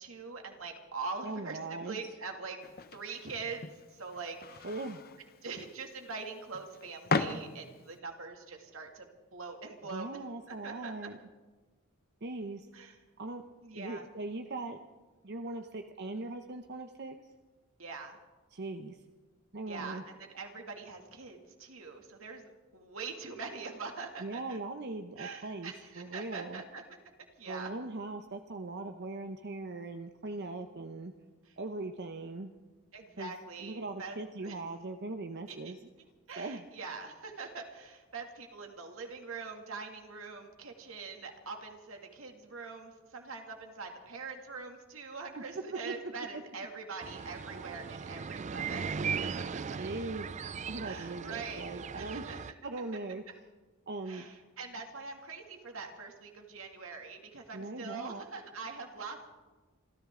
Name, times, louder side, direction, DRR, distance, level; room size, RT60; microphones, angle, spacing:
voice 1, 0.0-2.6 2.9-4.7 5.4-10.2 10.5-11.1 12.7-13.0 13.6-14.1 17.8-18.2 19.7-24.6 25.2-26.8 27.4-27.7 32.9-34.2 34.4-34.6 35.5-35.9 36.3-49.8 50.8-51.6 51.9-52.4 54.1-59.3, right 4 dB, 70° right, 3 dB, 2.4 m, -43 dB
voice 2, 1.2-2.0 4.6-5.0 9.9-11.2 12.2-12.7 13.2-13.4 13.7-14.8 15.2-17.2 18.5-19.0 19.5-20.0 24.2-26.6 27.5-31.1 31.6-32.5 33.2-33.3 33.6-35.8 36.4-36.7 45.3-46.4 49.8-50.3 50.7-52.2 52.6-53.2 53.9-54.3 57.5-58.3, right 2 dB, 50° right, 5 dB, 0.8 m, -40 dB
sound 1, 2.6-8.0, left 4 dB, 45° left, 0.9 m, -38 dB
sound 2, 47.0-52.5, right 5 dB, 35° right, 0.4 m, -38 dB
27.0 x 14.0 x 3.8 m, 1.3 s
head